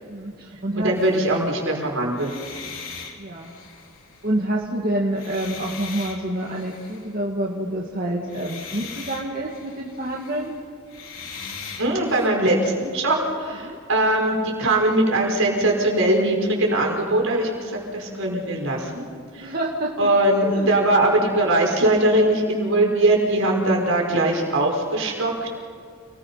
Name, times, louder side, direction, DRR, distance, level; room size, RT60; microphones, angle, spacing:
voice 1, 0.1-0.9 3.2-3.5 4.2-10.5 13.6-13.8 19.4-20.1 20.4-20.7, right 1 dB, 40° right, -2 dB, 2.0 m, -27 dB
voice 2, 0.8-2.4 11.8-17.5 17.9-19.0 19.3-19.5 20.0-25.5, right 1 dB, 70° right, 0 dB, 5.4 m, -21 dB
sound 1, 0.9-1.6 2.1-4.7 5.0-7.1 8.2-12.3, left 5 dB, 70° left, 3.4 m, -40 dB
29.5 x 20.0 x 5.7 m, 2.3 s
head